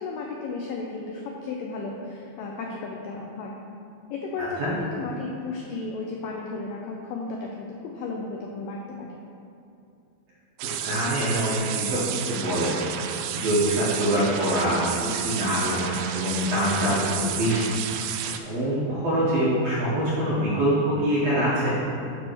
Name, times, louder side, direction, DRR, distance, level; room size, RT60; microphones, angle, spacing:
voice 1, 0.0-3.6 4.1-9.2, left 3 dB, 90° left, 0 dB, 1.9 m, -34 dB
sound 1, 10.6-18.4, right 9 dB, 90° right, 2.0 m, -31 dB
voice 2, 10.8-12.7 13.3-14.8 15.1-17.7 18.4-21.7, equal, 70° right, -8 dB, 1.5 m, -24 dB
9.6 x 3.4 x 6.0 m, 2.5 s
omnidirectional pair, 4.6 m